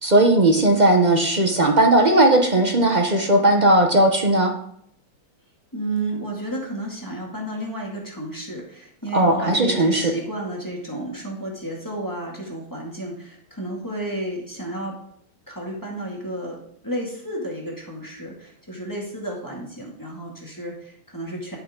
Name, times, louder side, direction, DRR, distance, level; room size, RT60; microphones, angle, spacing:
voice 1, 0.0-4.5 9.1-10.1, right 1 dB, 50° right, 3 dB, 0.5 m, -17 dB
voice 2, 5.7-15.0 15.5-16.6 16.8-21.6, right 1 dB, 10° left, -3 dB, 1.9 m, -32 dB
11.5 x 7.2 x 3.8 m, 0.68 s
omnidirectional pair, 2.4 m